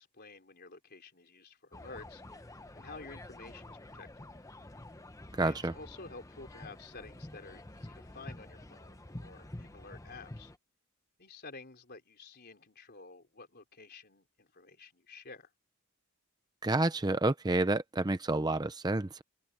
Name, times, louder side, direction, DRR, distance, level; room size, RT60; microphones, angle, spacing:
voice 1, 0.0-2.4 2.7-4.2 5.4-10.5 11.2-15.5, left 3 dB, 45° left, 4.0 m, -51 dB
sound 1, 1.7-10.6, left 1 dB, 15° left, 0.9 m, -49 dB
voice 2, 5.4-5.7 16.6-19.2, right 2 dB, 20° right, 0.6 m, -29 dB
open air
head